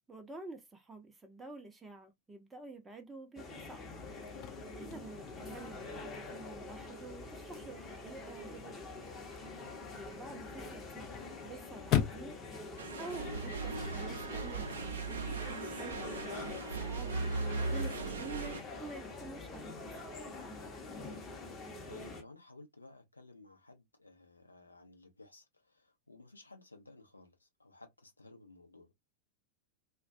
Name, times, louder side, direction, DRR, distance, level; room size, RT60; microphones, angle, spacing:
voice 1, 0.1-3.9 4.4-8.9 9.9-12.4 12.9-15.1 15.7-17.1 17.6-20.2, right 3 dB, 10° right, 0.6 m, -49 dB
sound 1, 3.4-22.2, left 3 dB, 25° left, 0.8 m, -45 dB
Chirp tweet / Car / Slam, 4.1-14.1, left 10 dB, 40° left, 0.4 m, -41 dB
sound 2, 12.8-18.6, right 4 dB, 70° right, 0.5 m, -38 dB
voice 2, 21.9-29.0, left 3 dB, 80° left, 0.6 m, -56 dB
2.3 x 2.1 x 2.5 m
figure-of-eight pair, 90°, 0 cm